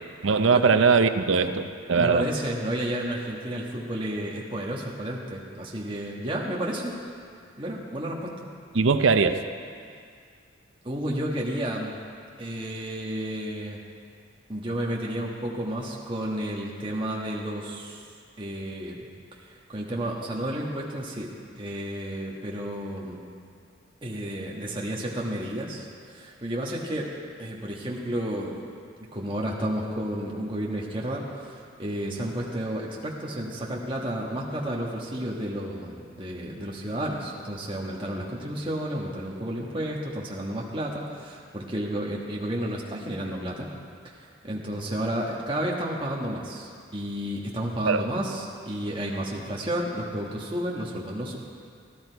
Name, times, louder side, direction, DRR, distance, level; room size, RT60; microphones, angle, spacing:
voice 1, 0.2-2.2 8.7-9.4 47.9-48.0, right 5 dB, 75° right, 9 dB, 0.6 m, -21 dB
voice 2, 1.9-6.9 7.6-8.5 10.8-12.0 12.4-13.8 14.5-18.0 18.4-19.1 19.4-21.3 21.5-23.2 24.0-27.1 27.4-28.6 29.1-43.7 44.4-51.4, right 1 dB, 25° right, -3 dB, 1.4 m, -31 dB
15.0 x 12.0 x 4.6 m, 2.2 s
head